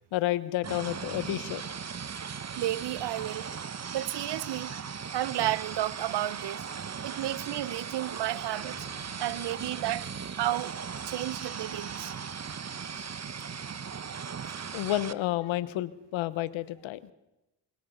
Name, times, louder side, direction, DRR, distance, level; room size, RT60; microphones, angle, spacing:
voice 1, 0.1-1.6 14.7-17.0, left 15 dB, 85° left, 1.1 m, -30 dB
sound 1, 0.6-15.1, right 6 dB, 35° right, 1.2 m, -38 dB
voice 2, 2.6-3.5 3.9-4.7 5.1-6.6 7.0-10.7 11.0-12.2 14.5-14.6, right 14 dB, 65° right, 0.8 m, -32 dB
24.5 x 23.0 x 5.5 m
supercardioid pair, 60°, 45 cm